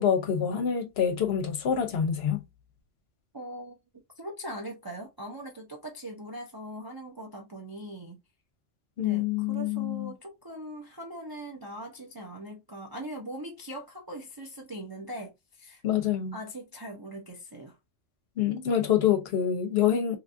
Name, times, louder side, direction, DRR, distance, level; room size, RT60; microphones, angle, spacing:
voice 1, 0.0-2.4 9.0-10.1 15.8-16.4 18.4-20.2, left 9 dB, 65° left, 0.8 m, -26 dB
voice 2, 3.3-3.8 4.2-8.2 9.0-15.8 16.3-17.8, right 1 dB, 35° right, 0.3 m, -41 dB
3.1 x 2.3 x 2.5 m
omnidirectional pair, 1.2 m